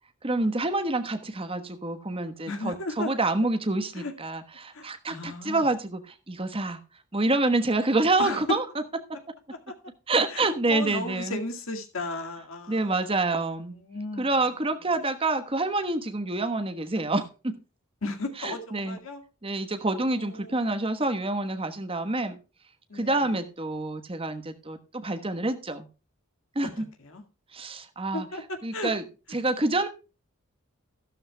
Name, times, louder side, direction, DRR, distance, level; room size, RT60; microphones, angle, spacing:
voice 1, 0.2-6.0 6.3-6.8 7.1-8.6 10.1-11.4 12.7-13.7 14.2-17.6 18.4-19.0 19.4-22.4 22.9-25.9 26.5-26.9 27.5-28.3 28.6-29.0 29.3-29.9, right 2 dB, 25° right, 1.2 m, -27 dB
voice 2, 2.5-3.1 3.9-4.1 4.7-5.7 8.2-8.6 9.7-9.8 10.3-14.8 18.0-19.2 20.0-20.7 22.9-23.4 26.6-27.2 28.1-28.9, left 2 dB, 70° left, 2.1 m, -36 dB
13.0 x 12.5 x 2.3 m
head